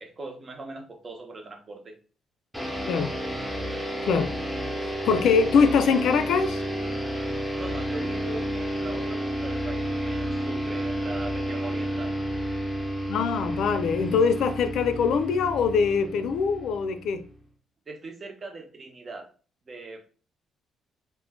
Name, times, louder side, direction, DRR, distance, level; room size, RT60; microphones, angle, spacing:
voice 1, 0.0-1.9 7.5-12.2 17.9-19.3 19.7-20.0, right 2 dB, 35° right, 0.7 m, -40 dB
sound 1, 2.5-17.4, equal, ahead, 0.7 m, -31 dB
voice 2, 4.0-4.4 5.0-6.6 13.1-17.2, left 5 dB, 75° left, 0.3 m, -23 dB
2.4 x 2.1 x 3.5 m
cardioid pair, 90°, 0 cm